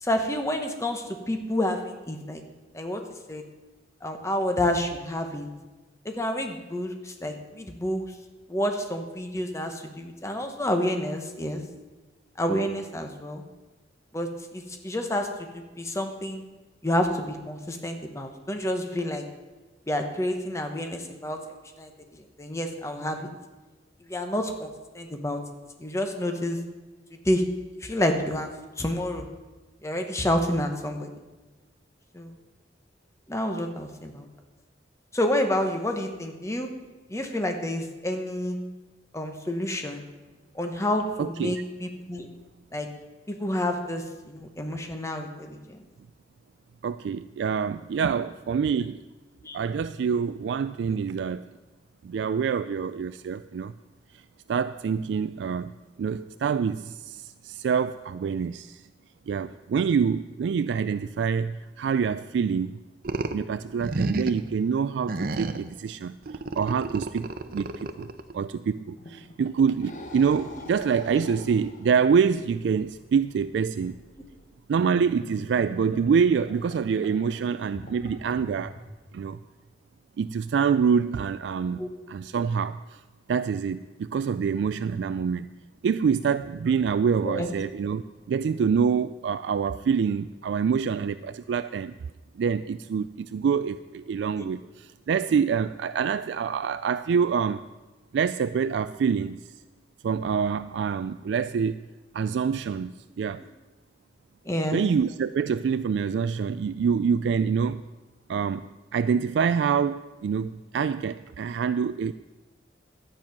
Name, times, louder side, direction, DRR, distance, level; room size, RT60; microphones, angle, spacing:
voice 1, 0.0-2.4 2.7-3.0 3.3-3.4 4.0-5.5 6.0-8.0 8.5-11.6 12.4-13.4 14.1-16.4 16.8-19.2 19.9-21.4 21.8-23.3 24.1-25.4 25.8-26.6 27.2-27.4 27.8-28.5 28.8-29.3 29.8-31.1 32.1-32.3 33.3-34.3 35.1-36.7 37.1-38.6 39.1-40.0 40.5-42.3 42.7-42.9 43.3-45.8 49.4-49.6 71.1-71.2 81.8-81.9 87.2-87.5 104.4-104.8, left 1 dB, 15° left, 5 dB, 1.0 m, -29 dB
voice 2, 41.2-41.6 46.8-49.0 49.5-51.5 52.0-53.7 54.5-58.8 59.3-62.8 63.3-66.2 66.6-74.0 74.7-78.8 79.1-79.4 80.2-82.8 83.3-85.5 85.8-91.9 92.4-97.7 98.1-99.4 100.0-101.8 102.1-103.4 104.7-107.8 108.3-112.1, right 6 dB, 70° right, 12 dB, 0.3 m, -26 dB
sound 1, 63.0-63.4 63.8-64.5 65.1-65.7 66.3-68.3, right 2 dB, 50° right, 0.7 m, -30 dB
sound 2, 69.0-78.9, left 1 dB, 45° left, 1.2 m, -45 dB
12.5 x 8.9 x 5.9 m, 1.2 s
head